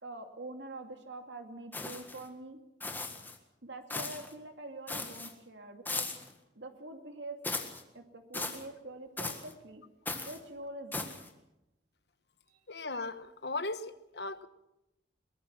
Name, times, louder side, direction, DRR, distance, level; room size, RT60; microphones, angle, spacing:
voice 1, 0.0-2.6 3.6-6.1 6.6-7.4 7.9-9.8 10.2-11.1 12.5-12.6, right 2 dB, 85° right, 5 dB, 2.4 m, -45 dB
sound 1, 1.7-2.2 2.8-3.4 3.9-4.3 4.9-5.3 5.8-6.3 7.4-7.8 8.3-8.6 9.2-9.5 10.0-10.4 10.9-11.3, left 3 dB, 10° left, 1.7 m, -38 dB
voice 2, 12.7-14.5, left 3 dB, 65° left, 12 dB, 1.2 m, -37 dB
22.5 x 19.5 x 6.0 m, 0.91 s
head